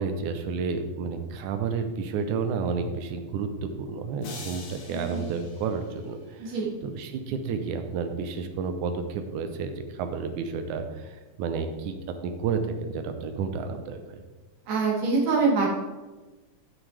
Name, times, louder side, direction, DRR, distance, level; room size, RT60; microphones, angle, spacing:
voice 1, 0.0-6.6 6.8-12.0 12.2-14.2, right 5 dB, 85° right, 7 dB, 2.3 m, -31 dB
sound 1, 4.2-6.5, left 4 dB, 80° left, 2.8 m, -44 dB
voice 2, 4.9-5.2 6.4-6.7 14.7-15.7, right 4 dB, 65° right, -2 dB, 2.8 m, -24 dB
13.0 x 6.3 x 3.4 m, 1.2 s
omnidirectional pair, 3.4 m